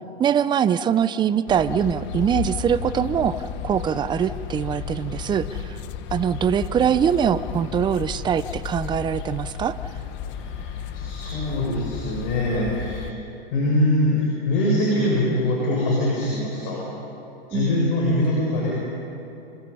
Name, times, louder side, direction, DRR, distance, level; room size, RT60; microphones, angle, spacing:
voice 1, 0.2-5.8 6.1-9.7 17.5-17.9, right 8 dB, 15° right, 14 dB, 0.5 m, -23 dB
sound 1, 1.5-13.1, left 8 dB, 40° left, 1.3 m, -33 dB
voice 2, 10.3-13.1 13.5-16.9 17.5-18.7, left 1 dB, 60° left, -4 dB, 6.9 m, -23 dB
27.5 x 25.5 x 5.6 m, 3.0 s
hypercardioid pair, 130°, 31 cm